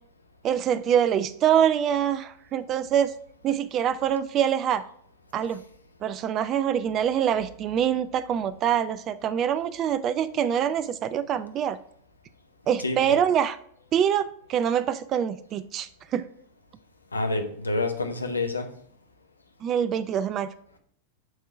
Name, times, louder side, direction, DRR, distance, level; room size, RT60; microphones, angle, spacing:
voice 1, 0.4-3.1 3.4-4.8 5.3-5.6 6.0-11.8 12.7-13.6 13.9-16.3 19.6-20.5, right 9 dB, 30° right, 14 dB, 0.3 m, -25 dB
voice 2, 12.8-13.2 17.1-18.7, left 2 dB, 80° left, 6 dB, 0.7 m, -28 dB
6.2 x 3.7 x 4.3 m, 0.62 s
figure-of-eight pair, 90°, 0 cm